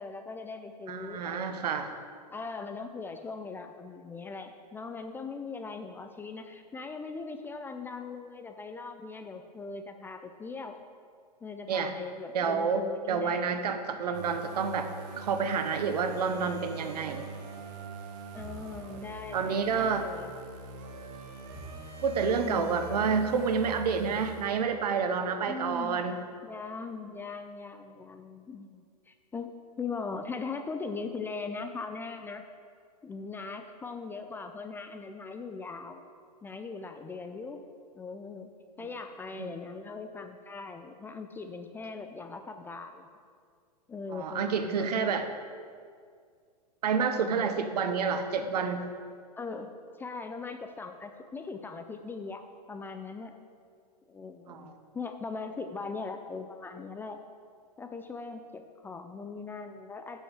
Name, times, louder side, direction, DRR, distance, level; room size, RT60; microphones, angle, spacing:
voice 1, 0.0-1.8 2.3-10.8 11.4-13.7 18.3-20.3 22.4-22.8 25.5-26.0 26.4-32.4 33.0-36.0 36.4-37.6 37.9-38.5 38.8-43.1 43.9-45.2 47.1-47.5 49.4-52.4 52.7-53.3 54.1-57.2 57.8-60.2, left 4 dB, 10° left, 6 dB, 0.4 m, -40 dB
voice 2, 0.9-1.9 11.7-11.9 12.3-14.9 15.2-17.3 19.3-20.0 22.0-26.2 39.3-39.5 44.1-45.2 46.8-48.9 54.5-54.7, right 5 dB, 70° right, 8 dB, 0.9 m, -29 dB
sound 1, 14.1-25.0, right 4 dB, 50° right, 1.4 m, -44 dB
8.6 x 5.5 x 6.5 m, 2.1 s
hypercardioid pair, 120°, 21 cm